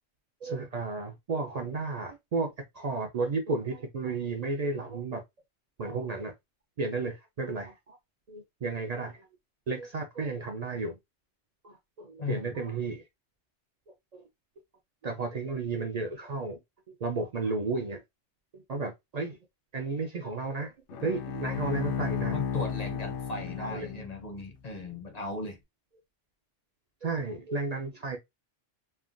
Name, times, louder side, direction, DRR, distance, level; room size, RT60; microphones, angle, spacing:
voice 1, 0.4-5.2 5.8-6.3 6.8-8.0 8.3-9.2 9.7-11.0 11.6-13.0 14.1-14.2 15.0-16.6 16.9-18.0 18.5-19.4 19.7-20.7 21.0-22.3 23.6-23.9 27.0-28.2, right 3 dB, 65° right, 0.4 m, -33 dB
voice 2, 12.2-12.5 22.3-25.6, left 2 dB, 45° left, 0.6 m, -37 dB
Bowed string instrument, 20.9-24.4, left 7 dB, 75° left, 0.9 m, -34 dB
3.3 x 2.1 x 2.5 m
omnidirectional pair, 1.2 m